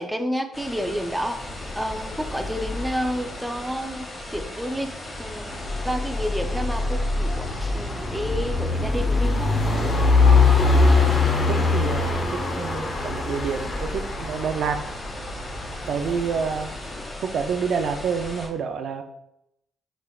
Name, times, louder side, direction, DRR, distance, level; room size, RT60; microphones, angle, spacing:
voice 1, 0.0-1.4 1.7-4.9 5.2-9.5, equal, 5° right, 6 dB, 0.6 m, -30 dB
sound 1, 0.5-18.5, left 1 dB, 35° left, 1.8 m, -38 dB
sound 2, 1.4-3.6 5.2-17.0, left 3 dB, 60° left, 1.1 m, -23 dB
voice 2, 10.6-14.8 15.9-16.7 17.2-19.0, right 6 dB, 70° right, 6 dB, 0.4 m, -28 dB
4.9 x 4.4 x 2.4 m, 0.78 s
cardioid pair, 75°, 0 cm